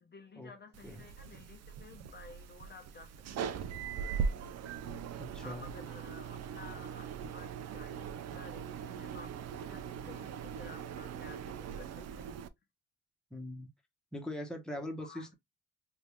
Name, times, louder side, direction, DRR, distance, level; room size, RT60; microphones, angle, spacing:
voice 1, 0.0-3.6 5.4-12.3 14.7-15.3, left 4 dB, 35° left, 0.8 m, -53 dB
sound 1, 0.7-12.5, right 7 dB, 55° right, 0.5 m, -40 dB
voice 2, 4.8-5.6 7.2-7.3 13.3-13.7 14.1-15.3, left 1 dB, ahead, 1.1 m, -42 dB
3.6 x 2.6 x 3.0 m
cardioid pair, 90°, 30 cm